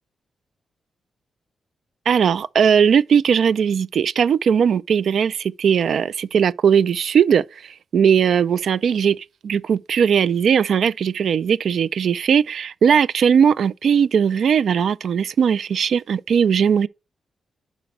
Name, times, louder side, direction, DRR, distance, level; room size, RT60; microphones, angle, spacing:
voice 1, 2.1-16.9, right 7 dB, 65° right, 0.3 m, -18 dB
5.9 x 5.0 x 6.2 m
wide cardioid pair, 130°, 0 cm